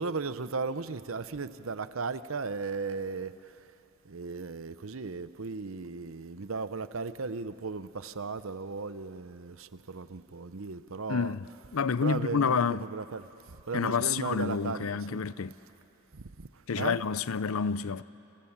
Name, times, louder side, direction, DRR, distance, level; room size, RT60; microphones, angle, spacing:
voice 1, 0.0-3.3 4.1-11.4 12.0-13.2 13.7-15.2 16.1-16.5 16.8-17.0, right 4 dB, 75° right, 0.8 m, -36 dB
voice 2, 11.1-11.4 11.7-12.9 13.7-15.5 16.7-18.0, left 6 dB, 85° left, 0.6 m, -29 dB
28.0 x 27.0 x 7.3 m
head